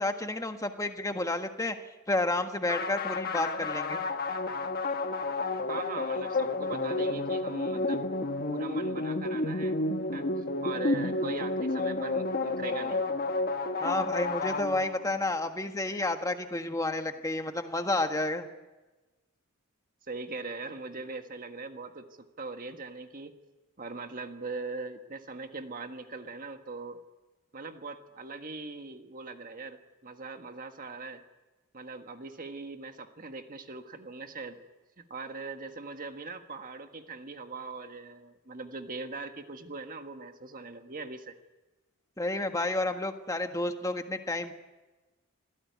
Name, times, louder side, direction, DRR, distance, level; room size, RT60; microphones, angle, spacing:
voice 1, 0.0-1.8 2.1-4.0 13.8-18.5 42.2-44.5, left 2 dB, 15° left, 6 dB, 1.5 m, -30 dB
sound 1, 2.7-15.2, left 2 dB, 40° left, 1.4 m, -31 dB
voice 2, 5.7-8.0 8.5-9.8 10.1-13.0 20.1-23.3 23.8-27.0 27.5-31.2 31.7-34.6 35.0-41.3, right 3 dB, 40° right, 6 dB, 1.6 m, -41 dB
26.5 x 16.5 x 9.5 m, 1.1 s
head